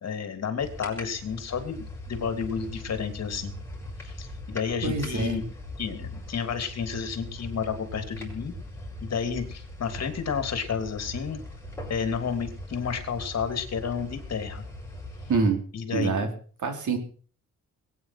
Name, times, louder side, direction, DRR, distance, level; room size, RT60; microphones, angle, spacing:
voice 1, 0.0-3.5 4.0-5.4 5.8-8.5 9.0-11.4 11.9-14.6 15.7-16.3, left 6 dB, 55° left, 8 dB, 3.0 m, -31 dB
sound 1, 0.6-15.5, left 1 dB, 10° left, 5.9 m, -40 dB
voice 2, 4.8-5.4 15.3-15.6 15.9-16.3 16.6-17.0, right 4 dB, 70° right, 5 dB, 4.4 m, -25 dB
21.5 x 9.5 x 5.8 m, 0.41 s
wide cardioid pair, 135°, 31 cm